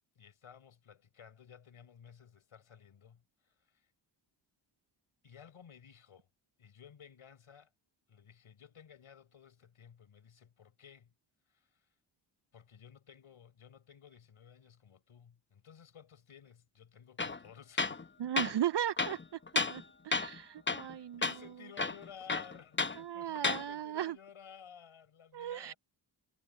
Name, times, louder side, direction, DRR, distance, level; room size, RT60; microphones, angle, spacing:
voice 1, 0.2-3.9 5.2-6.3 6.6-7.7 8.1-11.1 11.5-11.8 12.5-18.1 20.8-25.8, left 8 dB, 80° left, 5.3 m, -56 dB
Tools, 17.2-17.4 17.8-18.0 18.4-18.5 19.0-19.8 20.1-20.4 20.7-20.9 21.2-21.4 21.8-23.0 23.4-23.6, left 3 dB, 25° left, 1.0 m, -32 dB
voice 2, 18.2-19.4 19.7-21.5 22.9-24.2 25.3-25.7, right 10 dB, 55° right, 0.6 m, -37 dB
cardioid pair, 50°, 49 cm